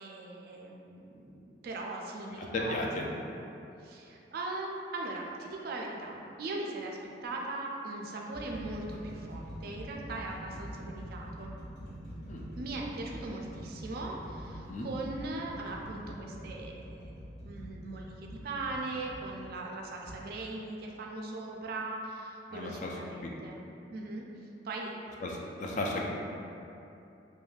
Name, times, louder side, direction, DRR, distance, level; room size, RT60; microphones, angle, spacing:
voice 1, 0.0-3.1 3.8-11.5 12.6-17.1 17.4-23.6 23.9-24.2 24.6-24.9, right 2 dB, 55° right, -1 dB, 0.3 m, -39 dB
voice 2, 2.4-3.1 12.3-12.4 14.7-14.9 22.5-23.3 25.2-26.0, left 2 dB, 45° left, -1 dB, 0.3 m, -35 dB
sound 1, 6.0-6.3 7.2-7.3 8.0-19.3 20.0-20.2, equal, 65° left, 1.1 m, -45 dB
3.2 x 2.2 x 2.4 m, 2.8 s
head